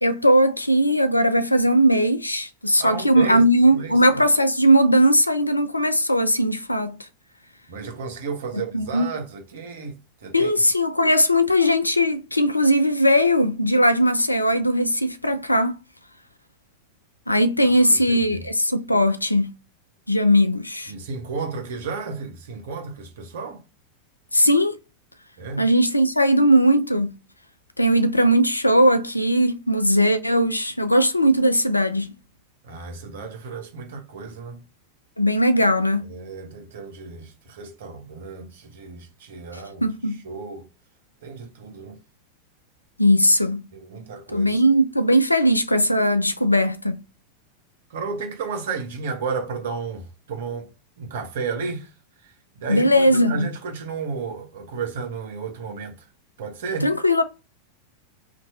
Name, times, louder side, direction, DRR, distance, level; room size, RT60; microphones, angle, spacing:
voice 1, 0.0-6.9 8.7-9.1 10.3-15.8 17.3-19.5 20.1-20.9 24.3-24.8 25.6-27.1 27.8-32.1 35.2-36.1 39.8-40.2 43.0-43.7 44.3-47.0 52.7-53.5 56.8-57.2, equal, 85° left, 0.4 m, -19 dB
voice 2, 2.8-4.2 7.7-10.6 17.6-18.5 20.9-23.6 25.4-25.7 32.6-34.6 36.1-39.9 40.2-40.7 41.2-42.0 43.7-44.6 47.9-50.7 51.0-51.9 52.2-56.1 56.4-56.9, right 5 dB, 60° right, 0.9 m, -33 dB
2.9 x 2.5 x 4.2 m
figure-of-eight pair, 90°, 0 cm